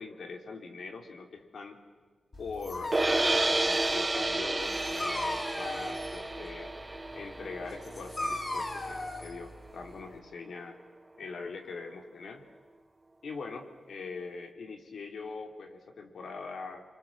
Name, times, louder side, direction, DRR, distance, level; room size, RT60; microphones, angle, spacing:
voice 1, 0.0-1.8 2.4-6.7 7.1-10.8 11.2-12.4 13.2-16.8, left 4 dB, 75° left, 4 dB, 3.2 m, -42 dB
Dog, 2.3-10.2, left 2 dB, 30° left, 4.7 m, -38 dB
sound 1, 2.9-9.1, right 2 dB, 20° right, 0.8 m, -31 dB
27.5 x 25.0 x 7.4 m, 1.5 s
wide cardioid pair, 155°, 0 cm